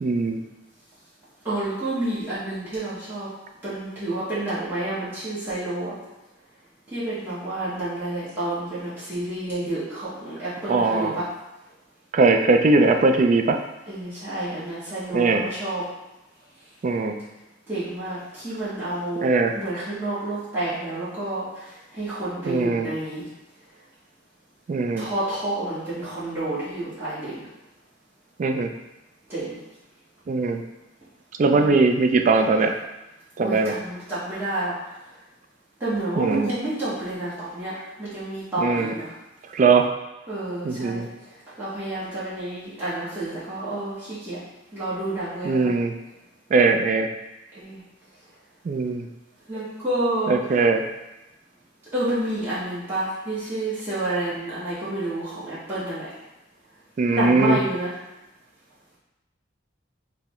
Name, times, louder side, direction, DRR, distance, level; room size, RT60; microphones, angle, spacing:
voice 1, 0.0-0.4 10.7-11.1 12.1-13.6 15.1-15.4 16.8-17.1 19.2-19.6 22.5-22.9 24.7-25.1 28.4-28.7 30.3-30.6 31.4-32.8 33.4-33.7 36.2-36.5 38.6-38.9 39.5-39.9 40.6-41.1 45.4-45.9 46.5-47.1 48.7-49.1 50.3-50.8 57.0-57.6, right 3 dB, 40° right, 5 dB, 0.3 m, -20 dB
voice 2, 1.4-3.3 3.6-5.9 6.9-11.3 13.9-15.9 17.7-23.3 25.0-27.5 29.3-29.6 31.5-31.8 33.4-34.7 35.8-39.2 40.3-41.1 41.6-44.4 44.7-45.6 47.5-47.8 49.5-50.6 51.9-56.1 57.1-58.0, right 1 dB, 10° right, -13 dB, 1.0 m, -29 dB
5.6 x 2.0 x 3.0 m, 0.99 s
head